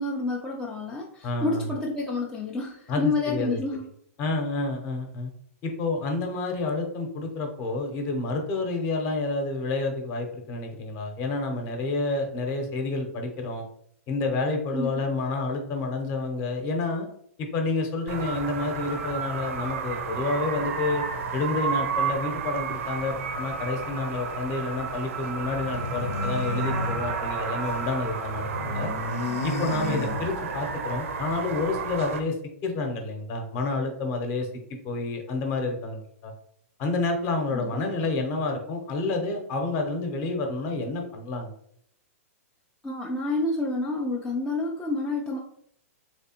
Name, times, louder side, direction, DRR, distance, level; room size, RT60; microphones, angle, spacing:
voice 1, 0.0-3.9 14.7-14.9 37.5-37.8 42.8-45.4, left 2 dB, 5° left, -3 dB, 0.3 m, -29 dB
voice 2, 1.2-1.7 2.9-3.6 4.2-5.3 5.6-13.6 14.1-17.1 17.4-21.0 21.3-28.9 29.4-32.3 32.6-34.5 34.8-36.3 36.8-41.5, left 3 dB, 35° left, 3 dB, 0.8 m, -29 dB
sound 1, 18.1-32.2, right 5 dB, 65° right, 0.6 m, -32 dB
sound 2, 25.5-27.9 28.2-30.7, left 2 dB, 70° left, 0.6 m, -32 dB
3.3 x 3.2 x 2.9 m, 0.68 s
hypercardioid pair, 140°, 8 cm